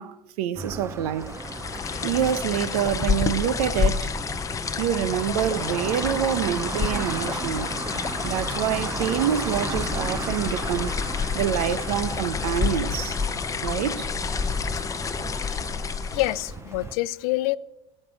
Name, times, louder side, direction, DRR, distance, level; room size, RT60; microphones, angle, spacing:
voice 1, 0.0-1.3 2.0-4.1 4.8-10.9 11.3-13.2 13.6-14.1, right 10 dB, 80° right, 0.9 m, -26 dB
sound 1, 0.6-17.0, right 4 dB, 15° right, 0.5 m, -36 dB
sound 2, 1.2-16.6, left 5 dB, 15° left, 0.8 m, -29 dB
sound 3, 1.7-8.4, left 9 dB, 40° left, 1.5 m, -46 dB
voice 2, 16.1-17.6, left 19 dB, 75° left, 0.6 m, -26 dB
15.5 x 7.7 x 8.6 m
supercardioid pair, 135°, 19 cm